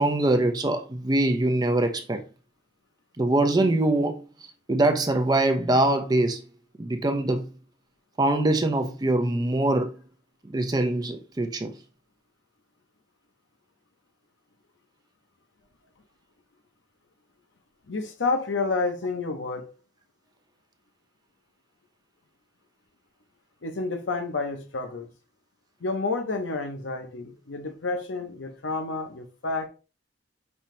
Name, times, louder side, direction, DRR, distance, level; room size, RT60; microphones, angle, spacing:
voice 1, 0.0-2.2 3.2-4.2 4.7-6.4 6.8-7.5 8.2-9.9 10.4-11.7, right 2 dB, 20° right, 0.5 m, -23 dB
voice 2, 17.9-19.7 23.6-25.1 25.8-29.7, left 3 dB, 75° left, 0.8 m, -29 dB
5.5 x 2.8 x 3.2 m
head